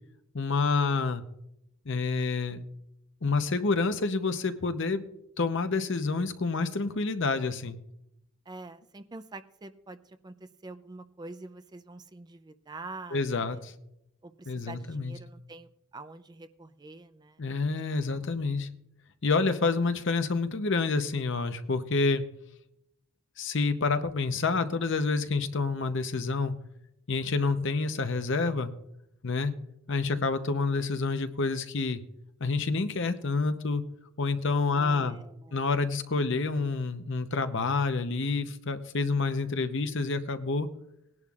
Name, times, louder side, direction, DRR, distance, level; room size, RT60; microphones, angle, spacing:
voice 1, 0.3-1.2 1.9-2.6 3.2-5.0 5.4-7.8 13.1-13.7 14.5-15.1 17.4-18.7 19.2-22.2 23.4-26.5 27.1-28.7 29.2-29.5 29.9-32.0 32.4-33.8 34.2-35.2 35.5-40.7, left 4 dB, 55° left, 9 dB, 0.8 m, -28 dB
voice 2, 8.5-13.6 14.2-17.7 18.1-18.5 34.7-35.7, right 2 dB, 20° right, 10 dB, 0.4 m, -46 dB
20.0 x 11.0 x 2.4 m, 0.80 s
head